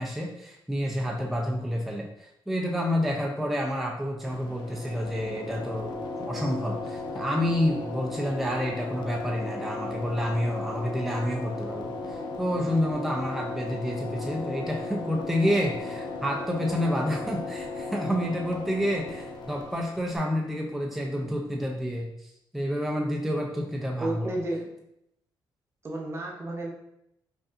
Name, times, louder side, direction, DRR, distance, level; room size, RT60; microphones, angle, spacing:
voice 1, 0.0-22.1 22.5-24.4, equal, ahead, 0 dB, 0.4 m, -29 dB
sound 1, 4.2-20.2, left 3 dB, 60° left, 0.5 m, -36 dB
voice 2, 24.0-24.7 25.8-26.7, right 2 dB, 30° right, 0 dB, 0.7 m, -32 dB
5.0 x 2.6 x 2.5 m, 0.81 s
cardioid pair, 140°, 9 cm